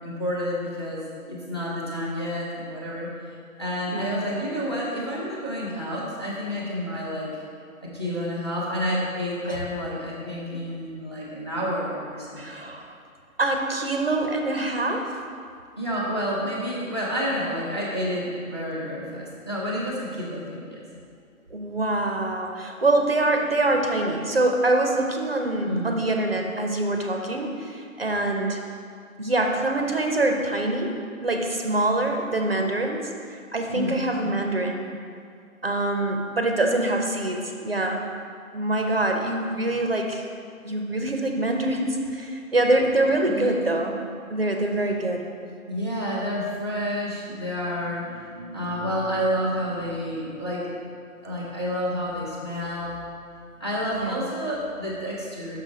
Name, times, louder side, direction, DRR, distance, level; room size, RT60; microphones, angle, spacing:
voice 1, 0.0-3.1 3.6-7.3 7.8-12.7 15.8-20.8 25.6-25.9 33.7-34.3 43.4-43.6 45.7-50.8 51.2-53.0 53.6-55.6, equal, 20° left, -6 dB, 0.7 m, -29 dB
voice 2, 12.4-12.9 13.4-15.1 21.5-28.6 29.2-30.9 31.2-33.1 33.5-34.9 35.6-38.0 38.5-40.3 40.6-44.0 44.3-45.2 53.9-54.3, right 2 dB, 45° right, 3 dB, 0.6 m, -24 dB
6.1 x 5.7 x 5.0 m, 2.3 s
figure-of-eight pair, 155°, 43 cm